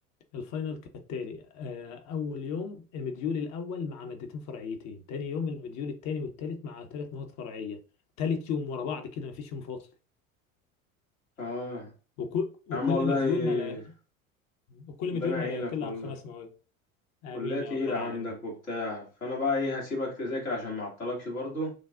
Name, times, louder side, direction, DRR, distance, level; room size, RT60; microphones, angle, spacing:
voice 1, 0.3-7.8 8.2-9.9 12.2-13.8 14.7-16.5 17.2-18.3, left 5 dB, 40° left, 0.9 m, -34 dB
voice 2, 11.4-11.9 12.7-13.8 15.1-16.1 17.3-21.7, left 2 dB, 80° left, 1.9 m, -31 dB
6.1 x 2.3 x 2.4 m
figure-of-eight pair, 70°, 41 cm